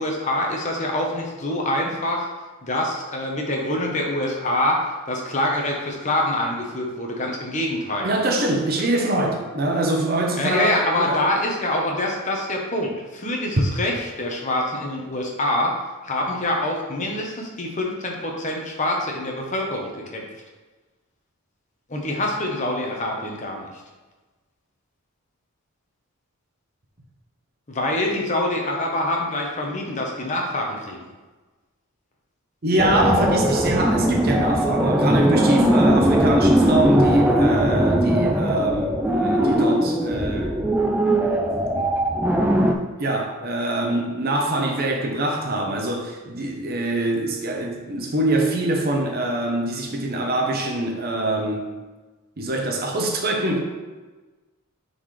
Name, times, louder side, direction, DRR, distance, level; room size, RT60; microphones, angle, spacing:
voice 1, 0.0-2.3 2.6-8.1 10.4-15.7 16.0-20.3 21.9-23.7 27.7-31.0, left 1 dB, 35° left, 1.0 m, -25 dB
voice 2, 8.0-11.2 32.6-40.6 41.4-41.9 43.0-51.7 52.4-53.6, right 1 dB, 45° right, 0.8 m, -24 dB
sound 1, 32.8-42.7, right 1 dB, 5° right, 0.4 m, -19 dB
9.6 x 4.0 x 3.2 m
head